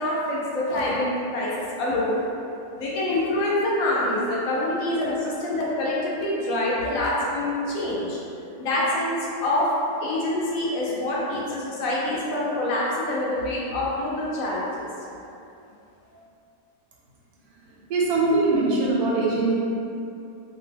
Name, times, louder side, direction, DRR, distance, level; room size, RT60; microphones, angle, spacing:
voice 1, 0.0-2.2 2.8-8.2 8.6-9.7 10.0-14.9 16.1-16.2, left 1 dB, 70° left, -5 dB, 0.9 m, -26 dB
voice 2, 17.9-19.5, right 3 dB, 80° right, -4 dB, 1.1 m, -21 dB
2.7 x 2.0 x 3.3 m, 2.7 s
omnidirectional pair, 1.6 m